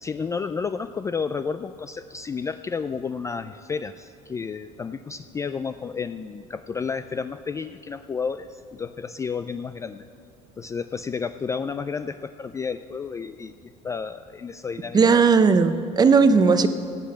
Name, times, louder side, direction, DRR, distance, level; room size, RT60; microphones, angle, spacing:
voice 1, 0.0-10.1 10.6-15.3, left 5 dB, 20° left, 11 dB, 0.3 m, -31 dB
voice 2, 14.9-16.7, right 5 dB, 25° right, 10 dB, 0.7 m, -17 dB
16.0 x 8.3 x 8.6 m, 2.5 s
cardioid pair, 130°, 16 cm